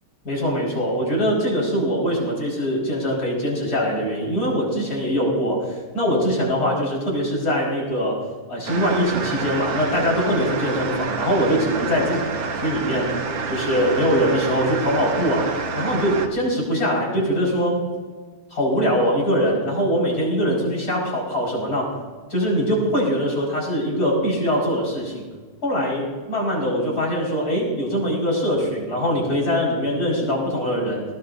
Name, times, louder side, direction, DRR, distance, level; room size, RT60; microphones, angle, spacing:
voice 1, 0.2-8.2 8.5-12.2 12.6-13.2 13.5-15.5 15.7-17.8 18.5-22.0 22.3-25.2 25.6-31.0, equal, 40° left, -3 dB, 5.3 m, -22 dB
sound 1, 8.7-16.3, right 5 dB, 65° right, 1.7 m, -28 dB
19.0 x 18.0 x 2.6 m, 1.4 s
omnidirectional pair, 2.4 m